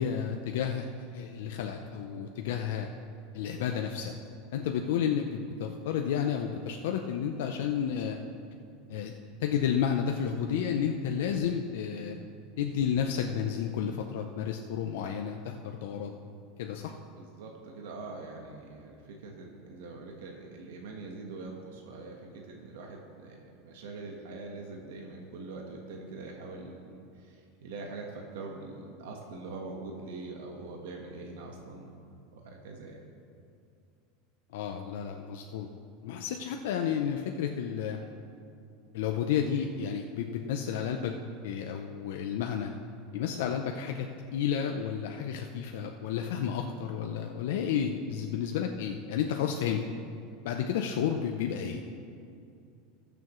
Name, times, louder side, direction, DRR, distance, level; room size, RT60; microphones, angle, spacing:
voice 1, 0.0-2.9 3.3-4.1 4.5-8.2 8.9-9.1 9.4-12.2 12.6-16.1 16.6-16.9 34.5-35.7 36.0-38.0 38.9-41.1 41.4-42.7 43.1-44.1 44.3-49.8 50.4-51.8, left 8 dB, 75° left, 4 dB, 0.6 m, -31 dB
voice 2, 17.2-31.9 32.3-33.0, right 3 dB, 80° right, 0 dB, 1.4 m, -43 dB
20.0 x 7.0 x 3.1 m, 2.5 s
supercardioid pair, 170°, 0 cm